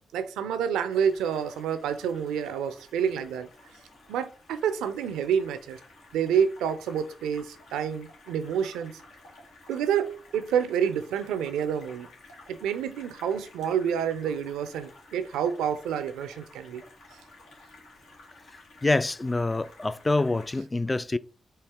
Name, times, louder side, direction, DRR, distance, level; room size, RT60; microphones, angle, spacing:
voice 1, 0.1-3.5 4.1-5.8 6.1-8.9 9.7-12.1 12.5-16.8, right 8 dB, 90° right, 0.4 m, -28 dB
sound 1, 0.9-20.6, left 2 dB, 85° left, 1.6 m, -53 dB
voice 2, 18.8-21.2, left 2 dB, 30° left, 0.3 m, -26 dB
4.4 x 2.9 x 3.5 m
supercardioid pair, 45°, 0 cm